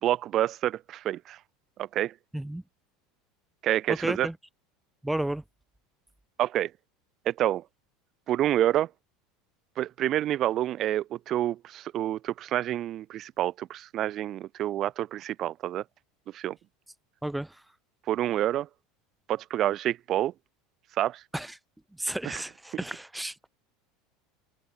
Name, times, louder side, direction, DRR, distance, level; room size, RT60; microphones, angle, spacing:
voice 1, 0.0-1.4 1.8-2.1 3.6-4.3 6.4-6.7 7.3-7.6 8.3-8.9 9.8-15.8 16.3-16.6 18.1-18.7 19.3-20.3 21.0-21.2 22.2-22.4, right 12 dB, 30° right, 2.3 m, -28 dB
voice 2, 3.9-4.4 5.0-5.4 17.2-17.6 21.3-21.6 22.0-23.5, right 1 dB, 5° right, 0.7 m, -32 dB
cardioid pair, 175°, 0 cm